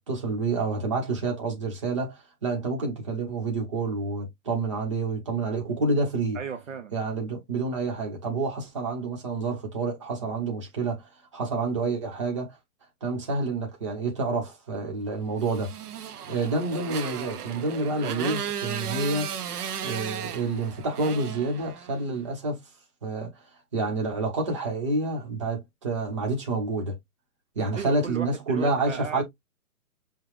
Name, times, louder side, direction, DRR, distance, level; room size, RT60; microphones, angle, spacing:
voice 1, 0.0-6.4 6.9-12.6 13.0-15.7 16.3-19.3 19.8-22.6 23.0-23.4 23.7-26.9 27.5-29.2, right 3 dB, 20° right, 1.0 m, -28 dB
voice 2, 6.3-7.1 27.8-29.2, right 6 dB, 55° right, 0.7 m, -36 dB
Motorcycle, 15.4-22.1, right 8 dB, 90° right, 0.8 m, -35 dB
5.5 x 2.3 x 3.1 m
hypercardioid pair, 175°, 45 cm